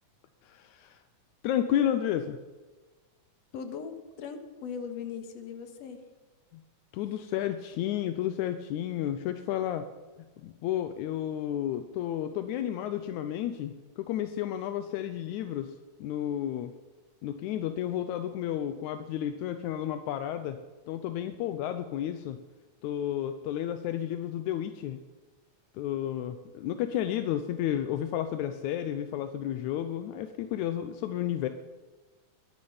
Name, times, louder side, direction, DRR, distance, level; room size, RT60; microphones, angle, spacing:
voice 1, 0.4-1.0 1.4-2.4 6.5-6.6 6.9-9.9 10.4-15.7 16.0-16.7 17.2-20.6 20.9-22.4 22.8-25.0 25.7-31.5, left 11 dB, 80° left, 10 dB, 2.1 m, -32 dB
voice 2, 3.5-6.0, left 6 dB, 60° left, 7 dB, 2.5 m, -39 dB
21.0 x 10.5 x 5.6 m, 1.3 s
omnidirectional pair, 3.4 m